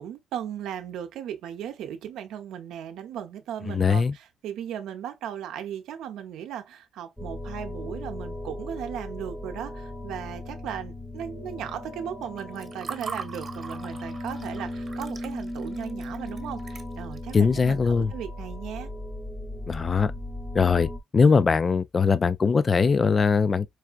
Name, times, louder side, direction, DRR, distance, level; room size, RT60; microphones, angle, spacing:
voice 1, 0.0-18.9, right 9 dB, 85° right, 0.6 m, -37 dB
voice 2, 3.7-4.1 17.3-18.1 19.7-20.1 20.5-23.7, left 5 dB, 35° left, 0.3 m, -21 dB
sound 1, 7.2-21.0, left 1 dB, 5° left, 0.6 m, -37 dB
Water / Fill (with liquid), 12.2-17.4, right 5 dB, 35° right, 0.9 m, -41 dB
4.6 x 2.4 x 2.4 m
cardioid pair, 90°, 0 cm